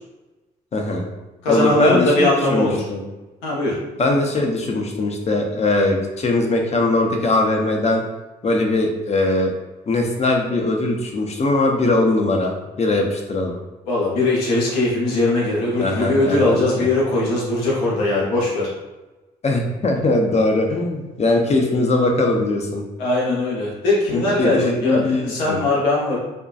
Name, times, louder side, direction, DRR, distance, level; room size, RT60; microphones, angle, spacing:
voice 1, 0.7-1.0 1.5-3.0 4.0-8.0 8.4-9.6 9.9-13.6 15.8-16.9 19.4-22.8 24.1-25.6, left 2 dB, 35° left, 2 dB, 0.5 m, -20 dB
voice 2, 1.4-2.8 3.4-3.7 13.9-18.7 23.0-26.2, left 2 dB, 80° left, -5 dB, 0.7 m, -20 dB
2.6 x 2.2 x 2.3 m, 1.1 s
hypercardioid pair, 45°, 20 cm